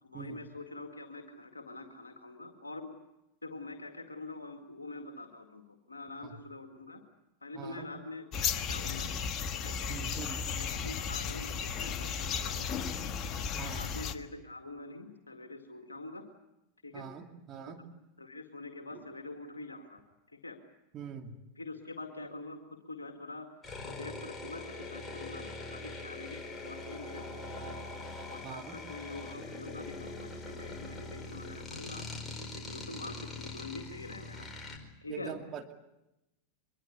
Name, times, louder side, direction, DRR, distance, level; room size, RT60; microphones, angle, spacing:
voice 1, 0.0-2.9 3.4-5.6 5.9-7.0 7.4-9.2 9.5-10.2 10.5-12.9 13.7-16.3 16.8-17.1 17.7-17.8 18.2-20.0 20.3-20.6 21.6-23.5 23.8-27.8 28.3-32.0 32.4-34.5 35.0-35.4, left 2 dB, 75° left, 5 dB, 2.1 m, -45 dB
voice 2, 7.5-7.9 9.9-10.5 13.6-13.8 16.9-17.8 20.9-21.3 28.4-28.8 35.1-35.7, right 7 dB, 30° right, 3 dB, 2.6 m, -43 dB
sound 1, 8.3-14.1, left 6 dB, 35° left, 1.5 m, -34 dB
sound 2, 23.6-34.8, left 2 dB, 15° left, 4.7 m, -43 dB
24.0 x 22.5 x 8.3 m, 0.92 s
figure-of-eight pair, 90°, 0 cm